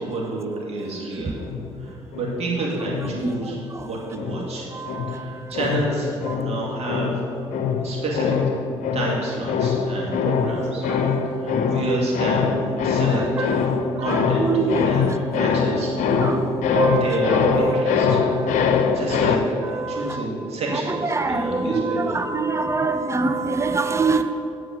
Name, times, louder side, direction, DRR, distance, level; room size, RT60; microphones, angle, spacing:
voice 1, 0.0-1.4 1.8-3.6 3.9-4.7 5.1-7.3 7.7-8.4 8.9-10.8 11.4-13.2 14.0-15.0 15.3-15.9 17.0-18.2 18.9-22.2, right 2 dB, 55° right, -4 dB, 2.3 m, -29 dB
sound 1, 1.4-3.8 4.2-19.4, left 6 dB, 75° left, 0.6 m, -24 dB
voice 2, 4.7-5.1 10.9-11.8 13.9-14.0 14.4-14.9 16.1-19.0 19.9-20.2 21.1-24.2, right 3 dB, 20° right, 8 dB, 0.7 m, -25 dB
7.7 x 4.9 x 7.0 m, 2.4 s
supercardioid pair, 65°, 13 cm